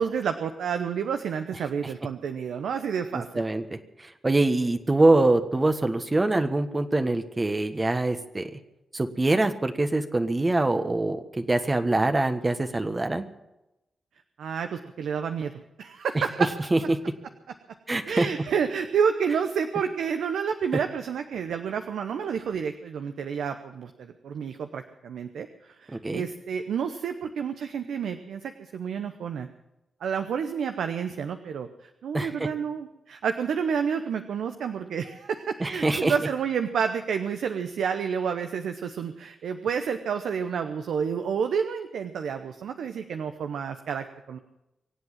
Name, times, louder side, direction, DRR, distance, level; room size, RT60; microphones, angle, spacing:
voice 1, 0.0-3.4 14.4-15.5 15.8-16.5 18.0-29.5 30.0-44.4, right 7 dB, 80° right, 7 dB, 0.8 m, -29 dB
voice 2, 3.1-8.6 8.9-13.2 16.7-17.0 17.9-18.3 25.9-26.2 32.1-32.5 35.6-36.1, right 2 dB, 30° right, 7 dB, 1.4 m, -24 dB
24.0 x 8.0 x 7.4 m, 0.94 s
supercardioid pair, 40°, 0 cm